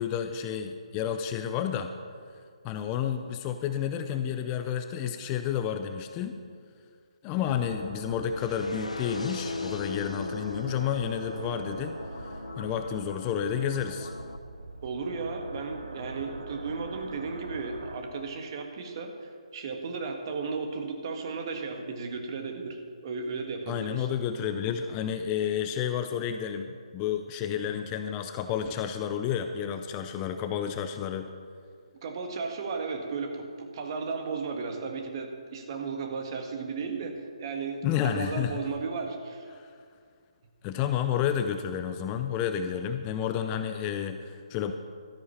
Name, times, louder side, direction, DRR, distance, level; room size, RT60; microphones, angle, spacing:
voice 1, 0.0-1.9 2.6-6.4 7.2-14.1 23.7-31.3 37.8-38.6 39.5-39.7 40.6-44.7, left 9 dB, 20° left, 7 dB, 0.5 m, -31 dB
sound 1, 7.4-18.0, right 2 dB, 75° right, 1.1 m, -42 dB
sound 2, 8.4-14.4, left 3 dB, 75° left, 0.8 m, -39 dB
voice 2, 14.8-24.1 32.0-39.5, right 4 dB, 40° right, 4 dB, 1.6 m, -35 dB
13.0 x 9.5 x 5.7 m, 2.2 s
figure-of-eight pair, 145°, 4 cm